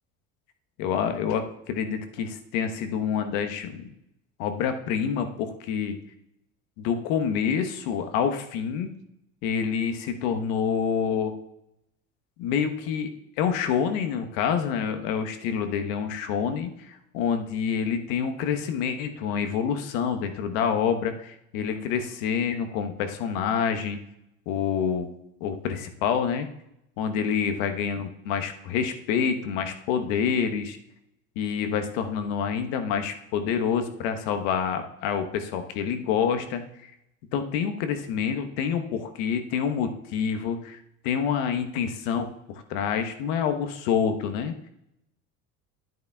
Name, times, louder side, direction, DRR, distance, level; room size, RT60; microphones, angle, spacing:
voice 1, 0.8-3.9 4.4-6.0 6.8-8.9 9.4-11.3 12.4-13.1 13.4-24.0 24.5-25.1 25.4-26.5 27.0-30.8 31.4-36.9 37.3-40.8 41.0-44.5, left 7 dB, 70° left, 7 dB, 1.2 m, -27 dB
10.5 x 9.2 x 2.3 m, 0.82 s
hypercardioid pair, 75°, 40 cm